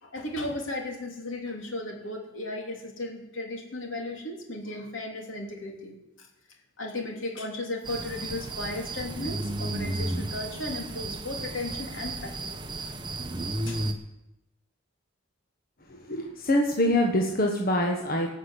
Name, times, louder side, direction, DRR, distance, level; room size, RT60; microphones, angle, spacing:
voice 1, 0.0-6.3 6.8-12.8 13.7-13.8, left 2 dB, 75° left, 1 dB, 3.0 m, -35 dB
sound 1, 7.8-13.9, right 2 dB, 25° right, 0.9 m, -33 dB
voice 2, 15.9-18.3, left 1 dB, 45° left, 1 dB, 1.4 m, -25 dB
18.0 x 6.4 x 8.1 m, 0.91 s
head